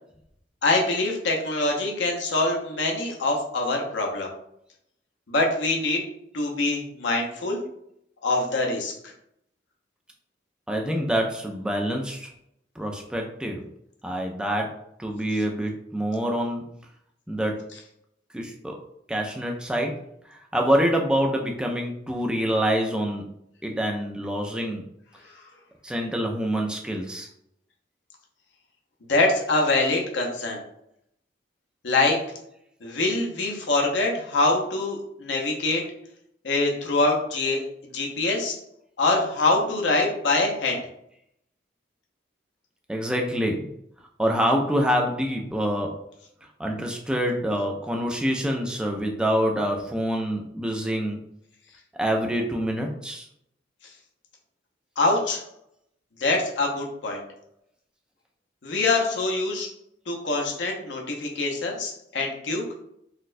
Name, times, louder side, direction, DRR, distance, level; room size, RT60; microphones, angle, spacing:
voice 1, 0.6-4.3 5.3-6.0 6.3-7.6 8.2-8.9 29.1-30.6 31.8-32.2 32.8-35.8 36.4-37.6 37.9-38.6 39.0-40.8 55.0-55.4 56.2-57.2 58.6-59.7 60.1-62.6, left 2 dB, 85° left, 0 dB, 0.7 m, -24 dB
voice 2, 10.7-12.3 12.8-13.6 14.0-16.6 17.3-17.6 18.3-18.8 19.1-19.9 20.3-23.2 23.6-24.8 25.8-27.3 42.9-43.7 44.2-45.9 46.6-51.2 51.9-53.3, equal, 5° right, 1 dB, 0.3 m, -26 dB
4.0 x 2.2 x 2.5 m, 0.74 s
head